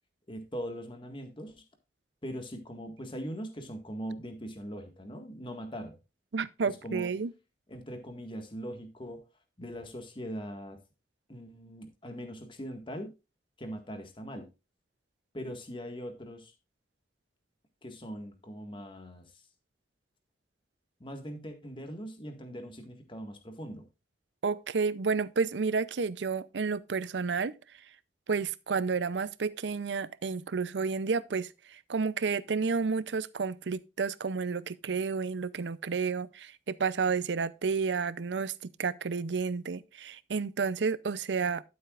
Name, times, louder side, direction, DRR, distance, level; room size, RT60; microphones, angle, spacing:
voice 1, 0.3-1.6 2.2-6.0 6.6-7.1 7.7-9.2 9.6-10.8 11.3-13.1 13.6-14.5 15.3-16.5 17.8-19.4 21.0-23.9, equal, 30° left, 1.7 m, -41 dB
voice 2, 6.3-7.3 24.4-27.6 28.3-38.5 38.8-41.6, right 5 dB, 80° right, 0.6 m, -31 dB
12.0 x 8.0 x 2.4 m
head